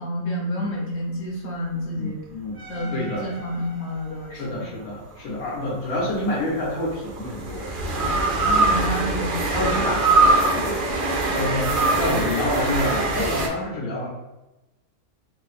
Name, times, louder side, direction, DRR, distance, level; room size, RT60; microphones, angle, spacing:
voice 1, 0.0-2.2 2.7-4.7 8.4-9.8, left 1 dB, 50° left, -3 dB, 1.1 m, -29 dB
voice 2, 1.9-2.6 2.9-3.2 4.3-7.7 9.5-14.1, left 1 dB, 75° left, -5 dB, 1.4 m, -28 dB
sound 1, 2.6-4.1 5.9-13.5, right 2 dB, 65° right, 0.5 m, -23 dB
3.5 x 2.0 x 4.1 m, 0.98 s
omnidirectional pair, 1.5 m